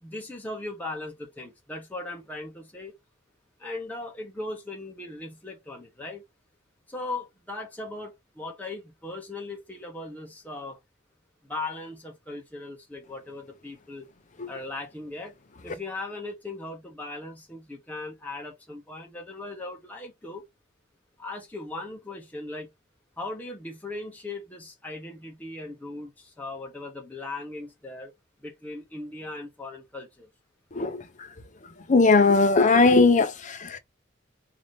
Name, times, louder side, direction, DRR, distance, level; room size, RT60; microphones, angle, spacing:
voice 1, 0.0-2.9 3.6-6.2 6.9-10.8 11.4-14.1 14.5-15.3 15.6-20.4 21.2-22.7 23.2-28.1 28.4-30.3, left 2 dB, 10° left, 1.0 m, -38 dB
voice 2, 30.7-31.3 31.9-33.8, left 3 dB, 40° left, 0.6 m, -19 dB
3.9 x 2.8 x 3.2 m
head